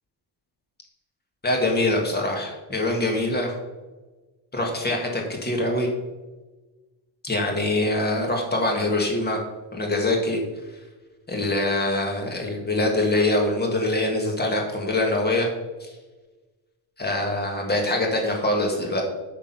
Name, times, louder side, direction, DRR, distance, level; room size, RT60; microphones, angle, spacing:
voice 1, 1.4-3.6 4.5-5.9 7.2-9.4 9.7-10.4 11.3-15.5 15.8-15.9 17.0-19.0, left 2 dB, 20° left, 1 dB, 1.7 m, -24 dB
8.8 x 6.2 x 5.4 m, 1.2 s
cardioid pair, 175°, 49 cm